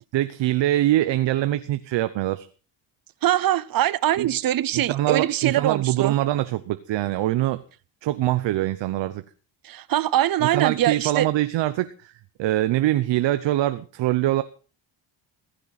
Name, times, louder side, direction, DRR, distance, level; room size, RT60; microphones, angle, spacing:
voice 1, 0.1-2.5 4.2-4.3 4.7-7.6 8.0-9.2 10.4-12.1 12.4-14.4, right 14 dB, 85° right, 0.8 m, -23 dB
voice 2, 3.2-6.1 9.6-11.3, right 13 dB, 55° right, 0.7 m, -23 dB
15.5 x 15.0 x 4.1 m
cardioid pair, 170°, 43 cm